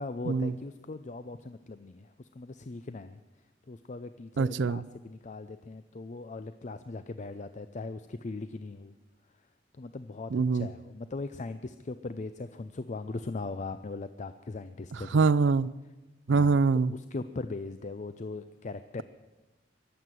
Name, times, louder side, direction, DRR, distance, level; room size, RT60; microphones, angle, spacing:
voice 1, 0.0-3.2 3.7-8.9 9.8-15.3 16.3-16.6 16.9-19.0, left 3 dB, 40° left, 0.5 m, -39 dB
voice 2, 4.4-4.8 10.3-10.7 14.9-15.7 16.3-16.9, right 4 dB, 80° right, 0.4 m, -24 dB
23.5 x 8.1 x 7.6 m
head